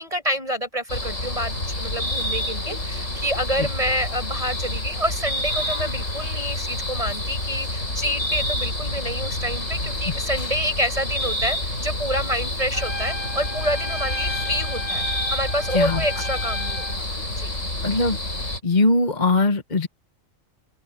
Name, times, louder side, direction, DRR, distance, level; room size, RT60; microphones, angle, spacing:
voice 1, 0.0-17.5, equal, 25° right, 7.3 m, -28 dB
sound 1, 0.9-18.6, left 1 dB, 70° left, 7.4 m, -28 dB
Trumpet, 12.7-17.0, left 1 dB, 50° right, 5.3 m, -34 dB
voice 2, 15.7-16.0 17.8-18.2 18.6-19.9, left 2 dB, 35° left, 1.4 m, -20 dB
open air
omnidirectional pair, 1.4 m